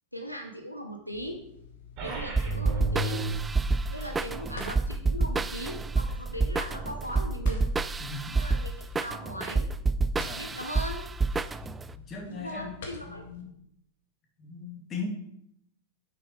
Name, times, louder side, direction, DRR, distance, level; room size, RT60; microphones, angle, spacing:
voice 1, 0.1-1.4 2.0-3.3 3.9-7.7 8.3-9.7 10.3-11.1 12.2-13.3, equal, 90° left, 3 dB, 1.0 m, -39 dB
sound 1, 1.1-13.4, left 6 dB, 60° left, 1.7 m, -48 dB
sound 2, 2.0-8.0, right 3 dB, 40° right, 2.9 m, -36 dB
sound 3, 2.4-11.9, right 3 dB, 15° right, 0.4 m, -28 dB
voice 2, 8.0-8.4 10.2-10.5 12.0-12.7 13.0-13.5 14.4-15.1, left 4 dB, 25° left, 1 dB, 2.4 m, -39 dB
8.3 x 6.3 x 4.8 m, 0.75 s
figure-of-eight pair, 90°, 0 cm